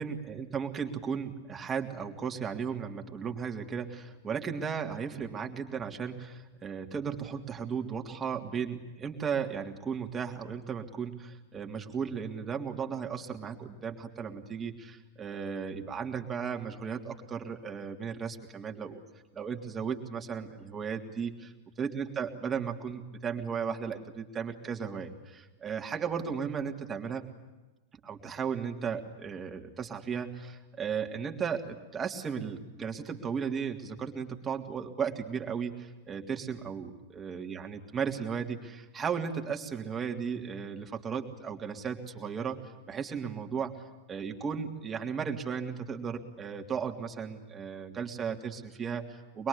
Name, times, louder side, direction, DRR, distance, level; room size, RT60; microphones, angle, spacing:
voice 1, 0.0-19.0 19.3-21.5 21.8-27.3 28.0-43.8 44.1-49.5, right 6 dB, 20° right, 3 dB, 3.0 m, -35 dB
24.5 x 22.0 x 8.5 m, 1.1 s
figure-of-eight pair, 90°, 0 cm